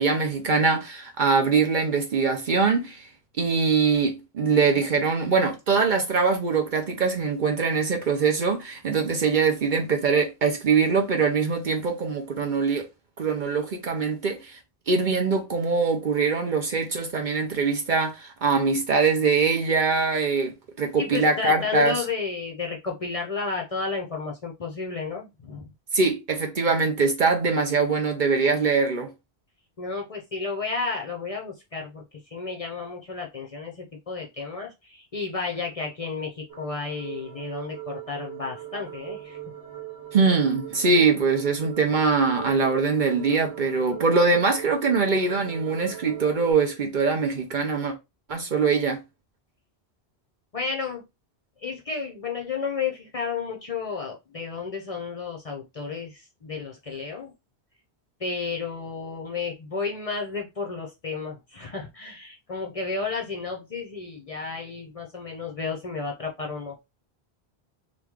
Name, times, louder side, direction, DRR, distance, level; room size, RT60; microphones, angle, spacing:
voice 1, 0.0-3.1 3.4-12.9 13.2-14.6 14.9-22.0 25.9-29.1 40.1-47.9 48.3-49.0, right 4 dB, 55° right, 0.8 m, -23 dB
voice 2, 21.0-25.7 29.8-39.4 50.5-51.0 51.6-57.3 58.2-66.8, left 4 dB, 45° left, 0.6 m, -32 dB
sound 1, 36.5-46.5, right 11 dB, 85° right, 1.2 m, -40 dB
3.0 x 2.4 x 3.5 m
omnidirectional pair, 1.1 m